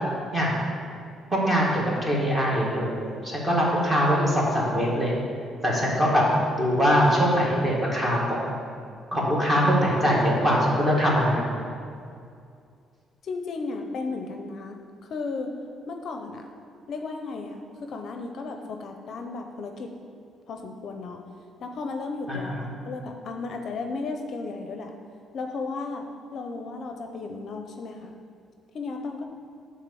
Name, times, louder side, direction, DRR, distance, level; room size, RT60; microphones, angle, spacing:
voice 1, 1.3-5.1 5.6-6.3 6.6-8.6 9.1-11.5 22.3-22.6, equal, 20° right, -4 dB, 1.8 m, -22 dB
voice 2, 13.2-15.5 15.9-16.5 16.9-19.9 20.5-21.2 21.6-24.9 25.3-28.1 28.7-29.2, left 3 dB, 50° left, 4 dB, 0.6 m, -34 dB
9.6 x 3.8 x 6.9 m, 2.4 s
cardioid pair, 150°, 0 cm